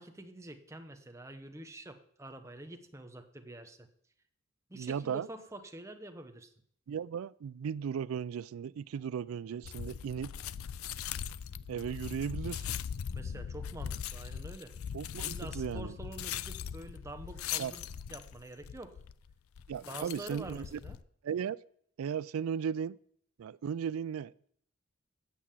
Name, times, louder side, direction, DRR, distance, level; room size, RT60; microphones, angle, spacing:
voice 1, 0.0-3.9 4.7-6.5 13.1-14.7 15.2-17.8 18.1-19.0 19.9-21.0, right 1 dB, 15° right, 0.8 m, -47 dB
voice 2, 4.7-5.3 6.9-10.3 11.7-12.7 14.9-15.9 17.6-17.7 19.7-20.8 21.2-21.6 22.0-23.0 23.4-24.5, right 7 dB, 80° right, 0.3 m, -36 dB
sound 1, 8.7-14.3, equal, 10° left, 2.2 m, -67 dB
sound 2, 9.6-21.0, left 8 dB, 90° left, 0.4 m, -40 dB
8.5 x 7.0 x 7.4 m
head